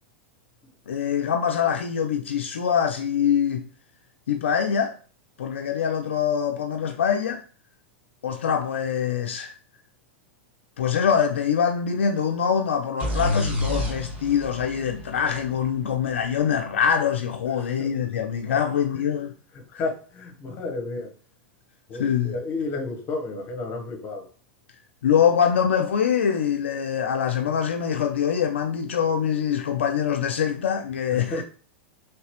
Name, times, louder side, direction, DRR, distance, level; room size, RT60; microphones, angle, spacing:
voice 1, 0.9-3.7 4.3-5.0 5.4-7.4 8.2-9.5 10.8-19.3 22.0-22.3 25.0-31.4, left 8 dB, 80° left, 0.4 m, -24 dB
sound 1, 13.0-16.7, left 1 dB, 25° right, 1.8 m, -30 dB
voice 2, 17.6-18.0 18.4-18.6 18.9-19.1 19.5-21.1 21.9-24.3 31.1-31.4, left 3 dB, 40° left, 1.0 m, -32 dB
3.2 x 2.9 x 3.0 m
hypercardioid pair, 105°, 6 cm